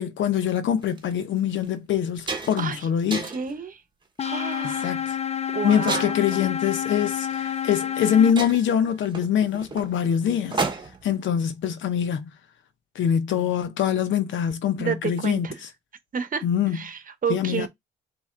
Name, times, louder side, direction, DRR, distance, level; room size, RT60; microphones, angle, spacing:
voice 1, 0.0-3.3 4.6-5.1 5.6-10.6 11.0-12.2 12.9-15.5 16.4-16.8 17.3-17.7, left 9 dB, 75° left, 0.9 m, -24 dB
sound 1, 0.8-1.0 1.6-1.7 2.0-2.7 3.1-3.6 4.2-4.5 5.9-6.4 7.5-7.6 8.0-8.1 8.4-11.1, right 3 dB, 25° right, 1.2 m, -32 dB
voice 2, 3.2-3.8 4.2-5.0 5.5-6.2 14.8-15.6 16.1-16.4 16.7-17.7, right 6 dB, 45° right, 1.0 m, -30 dB
sound 2, 4.2-8.3, left 9 dB, 35° left, 0.6 m, -29 dB
4.2 x 3.0 x 3.7 m
cardioid pair, 90°, 20 cm